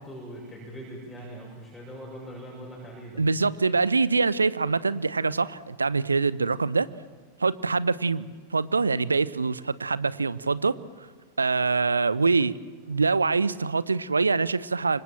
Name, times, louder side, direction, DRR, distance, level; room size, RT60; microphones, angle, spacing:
voice 1, 0.0-3.2, right 1 dB, 10° left, -4 dB, 7.7 m, -41 dB
voice 2, 3.2-6.9 7.4-10.7 11.4-12.5 12.9-15.0, right 4 dB, 75° right, 18 dB, 0.8 m, -24 dB
28.5 x 25.0 x 7.6 m, 1.5 s
figure-of-eight pair, 90°, 0 cm